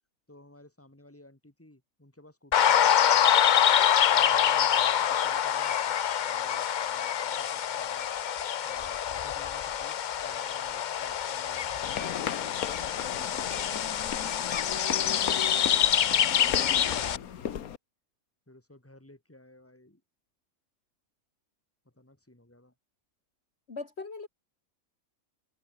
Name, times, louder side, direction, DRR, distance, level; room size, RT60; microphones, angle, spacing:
voice 1, 0.3-3.6 4.1-8.1 8.6-12.4 18.5-20.0 21.8-22.7, left 1 dB, 10° left, 3.2 m, -56 dB
sound 1, 2.5-17.2, left 9 dB, 70° left, 0.4 m, -26 dB
sound 2, 11.8-17.8, left 9 dB, 85° left, 1.6 m, -37 dB
voice 2, 23.7-24.3, left 4 dB, 45° left, 2.2 m, -39 dB
omnidirectional pair, 1.5 m